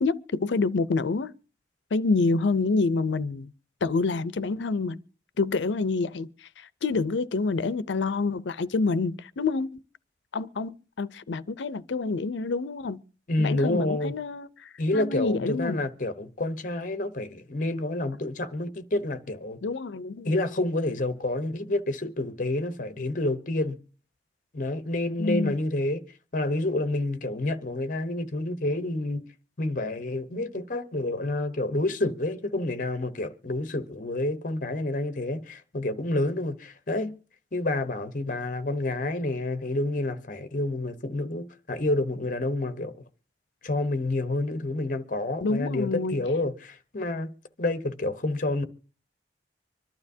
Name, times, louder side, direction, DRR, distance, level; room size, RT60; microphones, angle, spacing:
voice 1, 0.0-1.3 1.9-3.5 3.8-5.0 5.4-6.3 6.6-9.7 10.3-13.0 13.4-15.8 19.6-20.3 25.2-25.6 45.4-46.2, left 3 dB, 90° left, 0.5 m, -27 dB
voice 2, 13.3-14.1 14.8-19.6 20.2-23.8 24.5-26.0 26.3-29.2 29.6-37.1 37.5-42.9 43.6-47.3 47.6-48.6, left 2 dB, 50° left, 0.9 m, -28 dB
25.0 x 12.0 x 2.7 m
head